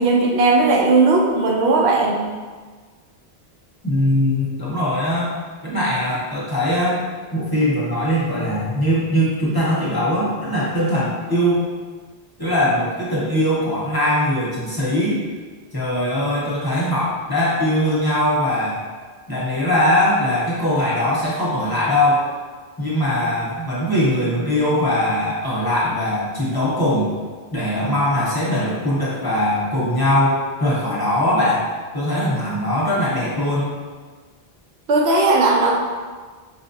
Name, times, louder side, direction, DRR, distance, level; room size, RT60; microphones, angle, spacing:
voice 1, 0.0-2.2 34.9-35.8, right 3 dB, 85° right, -1 dB, 0.9 m, -16 dB
voice 2, 3.8-5.3 5.6-7.0 7.3-11.6 12.4-15.2 15.7-18.8 19.3-22.2 22.8-27.1 27.5-31.6 31.9-33.7, left 1 dB, 25° left, -8 dB, 0.7 m, -21 dB
4.9 x 2.3 x 2.6 m, 1.5 s
omnidirectional pair, 1.1 m